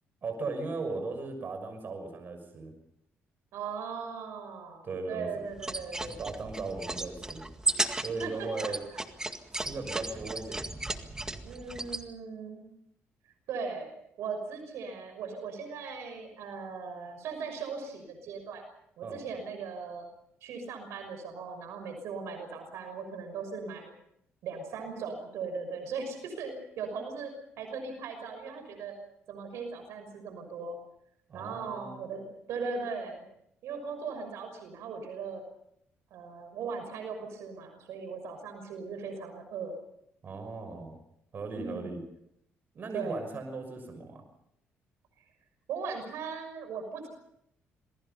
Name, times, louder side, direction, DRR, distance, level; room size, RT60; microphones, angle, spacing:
voice 1, 0.2-2.7 4.8-5.3 6.0-7.4 8.0-8.8 9.5-10.6 19.0-19.2 31.3-32.1 40.2-41.0 41.3-42.0 42.7-44.2, right 3 dB, 45° right, 6 dB, 6.4 m, -37 dB
voice 2, 3.5-6.2 8.2-8.5 8.9-9.0 9.5-9.6 10.0-10.1 11.4-12.6 13.5-13.9 14.2-18.6 19.0-20.1 20.4-24.0 24.4-28.9 29.3-30.8 31.3-33.2 33.6-35.4 36.1-39.8 41.5-42.0 42.9-43.2 45.7-47.1, right 5 dB, 80° right, 6 dB, 6.2 m, -38 dB
sound 1, 5.5-12.0, right 2 dB, 15° right, 1.9 m, -35 dB
28.0 x 21.0 x 5.7 m, 0.76 s
cardioid pair, 100°, 5 cm